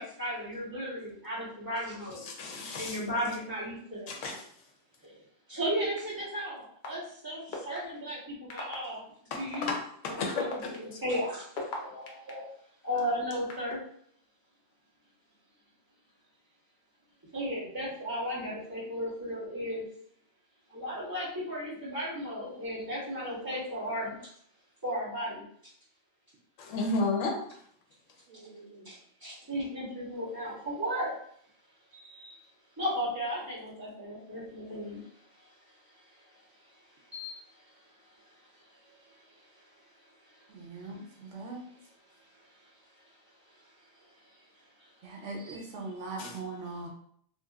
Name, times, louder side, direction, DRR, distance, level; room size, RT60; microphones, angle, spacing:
voice 1, 0.0-4.1 5.0-5.1 5.5-9.0 9.3-9.7 10.0-12.5 12.8-13.8 17.3-19.8 20.7-24.2 24.8-25.4 28.8-28.9 29.2-31.1 31.9-32.4 32.8-35.0 35.4-36.3 37.1-39.4 40.2-40.5 40.9-41.1 43.0-43.1 44.8-44.9 45.4-45.6, equal, 15° right, -10 dB, 1.4 m, -36 dB
voice 2, 2.2-3.0 4.1-4.4 9.3-9.8 10.0-10.5 26.6-27.3 46.2-46.3, left 3 dB, 75° left, 2 dB, 1.0 m, -32 dB
sound 1, 6.0-6.1 6.8-6.9 7.5-7.8 8.5-8.8 9.5-9.6 10.2-12.3 13.0-13.7, left 4 dB, 50° left, 0.6 m, -38 dB
voice 3, 28.3-28.9 40.5-41.6 45.0-46.9, right 3 dB, 70° right, 0 dB, 1.0 m, -41 dB
3.0 x 2.8 x 2.3 m, 0.64 s
omnidirectional pair, 1.3 m